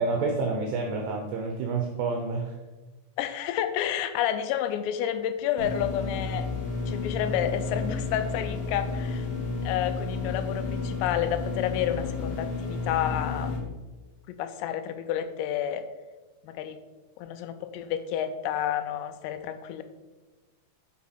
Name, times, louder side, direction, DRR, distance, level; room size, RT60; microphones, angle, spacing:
voice 1, 0.0-2.6, right 3 dB, 80° right, 2 dB, 2.4 m, -28 dB
voice 2, 3.2-6.5 6.9-9.3 9.6-13.6 14.3-15.8 16.4-16.8 17.2-19.8, left 10 dB, 85° left, 9 dB, 3.3 m, -30 dB
sound 1, 5.6-13.6, left 4 dB, 65° left, 3.5 m, -32 dB
11.0 x 5.8 x 4.2 m, 1.2 s
omnidirectional pair, 6.0 m